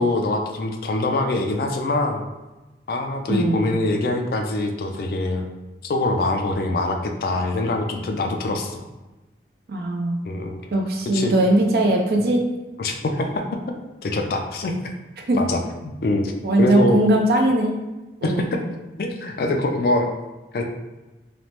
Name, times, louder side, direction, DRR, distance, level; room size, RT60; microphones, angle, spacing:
voice 1, 0.0-2.3 2.9-5.5 5.8-8.9 10.2-10.6 11.1-11.4 12.8-13.4 14.0-14.8 15.3-16.3 16.6-17.0 18.2-18.6 19.0-20.1 20.5-20.6, left 2 dB, 55° left, 4 dB, 0.3 m, -24 dB
voice 2, 3.3-3.7 9.7-10.2 10.7-12.4 15.2-15.4 16.4-17.8 18.2-18.5, right 1 dB, 60° right, 1 dB, 0.4 m, -20 dB
3.2 x 2.0 x 2.8 m, 1.1 s
head